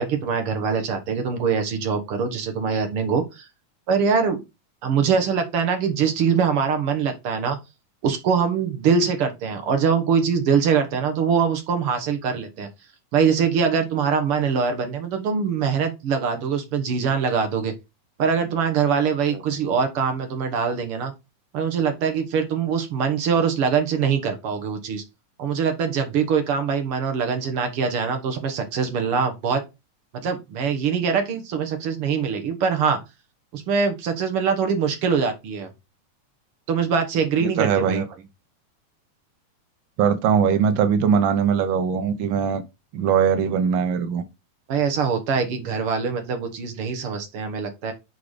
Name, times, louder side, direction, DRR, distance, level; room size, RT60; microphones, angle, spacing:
voice 1, 0.0-3.5 3.9-4.4 4.8-7.6 8.0-12.7 13.1-17.7 18.2-21.1 21.5-25.0 25.4-29.6 30.1-33.0 33.5-35.7 36.7-38.1 44.7-47.9, right 6 dB, 55° right, 1.9 m, -23 dB
voice 2, 37.4-38.0 40.0-42.6 42.9-44.2, right 7 dB, 85° right, 1.0 m, -21 dB
6.4 x 4.6 x 5.0 m
omnidirectional pair, 3.4 m